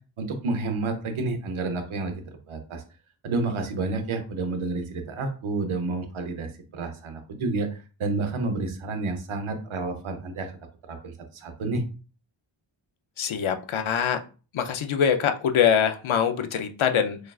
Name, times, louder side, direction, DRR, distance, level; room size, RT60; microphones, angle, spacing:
voice 1, 0.2-2.8 3.2-10.5 10.9-11.8, right 3 dB, 85° right, 6 dB, 0.9 m, -30 dB
voice 2, 13.2-14.2 14.5-17.2, left 8 dB, 80° left, 8 dB, 0.6 m, -23 dB
6.3 x 2.4 x 2.3 m, 0.36 s
cardioid pair, 55°, 48 cm